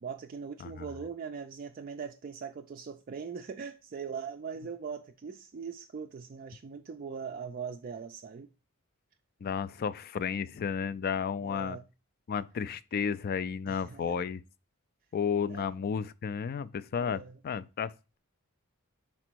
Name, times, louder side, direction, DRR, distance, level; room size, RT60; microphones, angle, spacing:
voice 1, 0.0-8.5 11.4-11.8 13.7-14.2 15.5-15.7 17.0-17.4, right 6 dB, 40° right, 0.3 m, -41 dB
voice 2, 9.4-11.8 12.3-14.4 15.1-18.2, left 6 dB, 45° left, 0.3 m, -33 dB
5.0 x 4.3 x 4.4 m
head